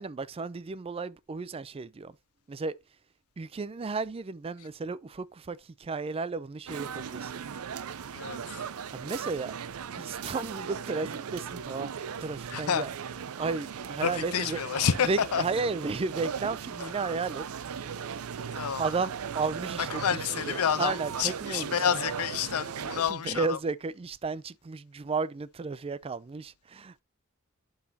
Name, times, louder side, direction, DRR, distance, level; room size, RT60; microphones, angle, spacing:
voice 1, 0.0-2.1 2.5-2.8 3.4-7.3 8.9-9.6 10.0-11.9 12.2-12.9 13.4-14.6 15.1-18.4 18.8-20.2 20.5-21.8 23.0-27.0, right 4 dB, 25° right, 0.4 m, -33 dB
sound 1, 6.7-23.0, right 7 dB, 85° right, 0.5 m, -38 dB
voice 2, 8.1-8.7 12.5-12.9 14.0-15.5 16.8-16.9 18.5-18.8 19.8-23.6, left 8 dB, 85° left, 0.5 m, -29 dB
11.5 x 4.0 x 2.8 m
head